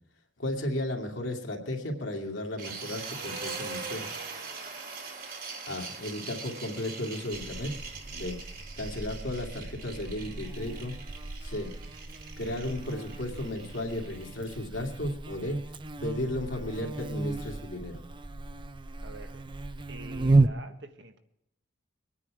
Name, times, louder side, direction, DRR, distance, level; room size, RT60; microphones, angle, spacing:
voice 1, 0.4-4.1 5.7-7.7 8.1-8.4 8.8-10.9 11.4-11.7 12.4-15.6 16.0-18.0, left 1 dB, 75° left, 2 dB, 2.4 m, -34 dB
sound 1, 2.6-14.5, right 4 dB, 50° right, 2.2 m, -42 dB
Buzz, 7.3-20.5, right 2 dB, 25° right, 0.5 m, -33 dB
voice 2, 19.0-19.6 19.9-21.2, right 2 dB, 65° right, 6 dB, 1.4 m, -47 dB
23.0 x 9.8 x 4.9 m, 0.79 s
head